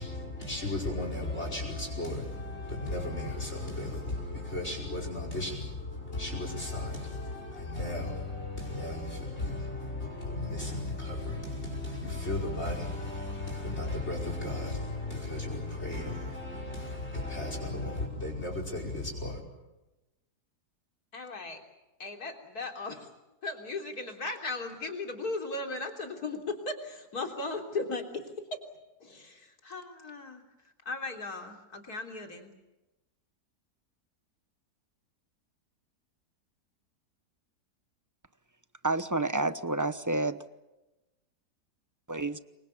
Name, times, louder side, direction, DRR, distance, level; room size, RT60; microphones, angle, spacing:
voice 1, 0.0-19.4, left 2 dB, 40° left, 5.6 m, -35 dB
voice 2, 21.1-21.6 22.0-23.1 23.4-28.6 29.0-32.5, left 3 dB, 65° left, 4.0 m, -37 dB
voice 3, 38.8-40.4 42.1-42.4, right 2 dB, 15° right, 0.7 m, -29 dB
28.5 x 24.0 x 7.2 m
omnidirectional pair, 1.7 m